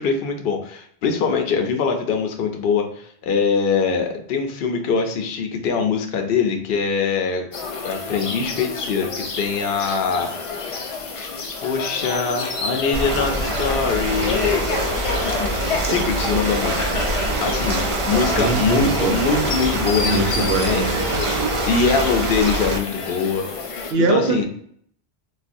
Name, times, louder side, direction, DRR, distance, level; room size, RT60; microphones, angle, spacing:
voice 1, 0.0-7.5 7.8-9.1 9.4-10.3 11.6-14.4 15.8-17.0 17.4-20.8 21.7-23.7 24.0-24.4, left 5 dB, 70° left, 4 dB, 0.7 m, -23 dB
sound 1, 7.5-23.9, left 4 dB, 55° left, 0.4 m, -29 dB
Ocean, 12.9-22.8, right 2 dB, 45° right, 0.4 m, -24 dB
voice 2, 18.3-19.1 20.0-21.2 23.9-24.4, right 3 dB, 75° right, 4 dB, 0.8 m, -22 dB
4.0 x 2.2 x 2.5 m, 0.63 s
omnidirectional pair, 1.1 m